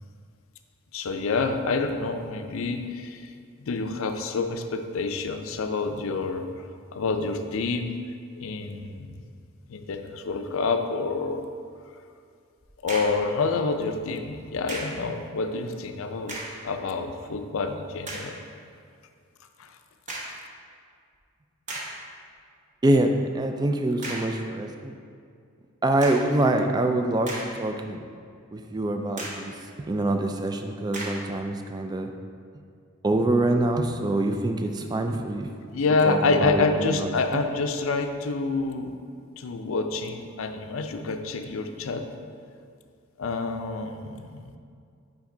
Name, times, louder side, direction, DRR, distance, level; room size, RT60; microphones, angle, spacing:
voice 1, 0.9-3.3 3.6-6.5 6.9-8.0 8.4-9.2 9.7-11.5 12.8-16.4 16.6-18.4 19.6-19.8 35.7-39.0 39.4-42.1 43.2-44.5, left 3 dB, 65° left, 7 dB, 0.5 m, -27 dB
sound 1, 12.6-13.3 14.7-15.1 16.2-16.7 17.3-17.4 18.0-18.4 20.1-20.5 21.1-21.2 21.7-22.1 24.0-24.4 26.0-26.4 27.0-27.8 28.2-28.3 29.2-29.5 30.9-31.3, right 1 dB, 35° right, 0.9 m, -36 dB
voice 2, 22.8-24.9 25.8-28.0 28.5-29.6 29.9-32.1 33.0-35.5 36.0-37.4, right 1 dB, 20° right, 5 dB, 0.3 m, -25 dB
6.0 x 5.2 x 3.8 m, 2.3 s
head